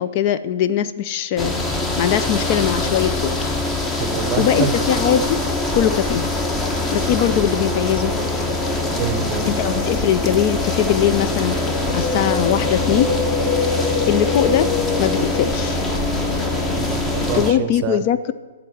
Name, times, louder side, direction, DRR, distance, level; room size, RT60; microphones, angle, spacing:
voice 1, 0.0-3.3 4.4-5.4 5.7-6.2 6.9-8.1 9.4-11.6 11.9-13.1 14.1-14.7 15.0-15.8 17.3-18.3, left 10 dB, 40° left, 13 dB, 0.3 m, -21 dB
sound 1, 1.4-17.5, left 2 dB, 15° left, 0.9 m, -23 dB
voice 2, 4.0-4.9 6.9-7.0 9.0-9.5 16.8-18.0, right 8 dB, 30° right, 10 dB, 0.7 m, -26 dB
Wind, 11.6-16.2, left 5 dB, 55° left, 0.8 m, -25 dB
10.5 x 4.0 x 7.7 m, 1.4 s
figure-of-eight pair, 115°, 0 cm